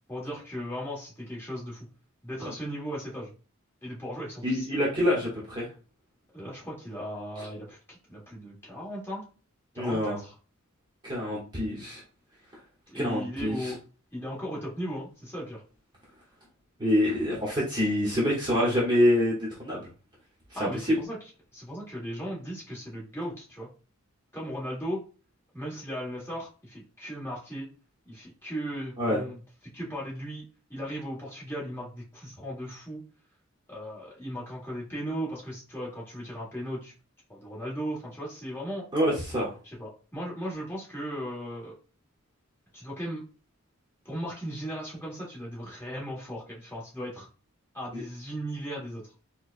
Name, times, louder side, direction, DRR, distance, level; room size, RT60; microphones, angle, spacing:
voice 1, 0.1-1.9 2.2-3.3 3.8-4.7 6.3-9.3 9.7-10.3 12.9-13.8 14.1-15.6 20.5-21.2 21.5-23.7 24.3-25.0 25.5-27.7 28.0-29.4 29.7-30.4 30.7-33.0 33.7-36.9 37.3-38.9 39.6-41.8 42.7-43.2 44.0-47.3 47.7-49.0, equal, 10° left, -5 dB, 1.5 m, -37 dB
voice 2, 4.4-5.7 7.4-7.5 9.8-10.2 11.0-12.0 12.9-13.7 16.8-19.9 20.5-20.9 29.0-29.2 38.9-39.5 47.9-48.0, left 1 dB, 20° right, -5 dB, 1.1 m, -26 dB
4.4 x 2.3 x 2.5 m, 0.35 s
head